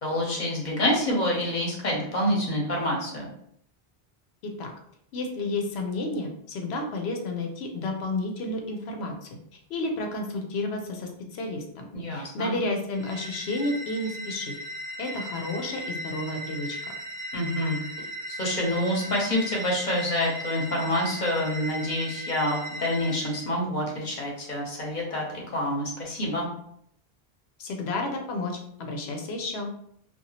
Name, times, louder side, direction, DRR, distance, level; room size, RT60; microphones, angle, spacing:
voice 1, 0.0-3.3 11.9-12.6 17.3-17.8 18.3-26.5, left 1 dB, 50° left, -2 dB, 0.9 m, -27 dB
voice 2, 5.1-14.5 15.0-16.9 27.6-29.7, left 2 dB, 85° left, 3 dB, 0.9 m, -31 dB
sound 1, 12.9-23.5, equal, 80° right, 0.8 m, -37 dB
2.8 x 2.4 x 2.7 m, 0.70 s
omnidirectional pair, 1.0 m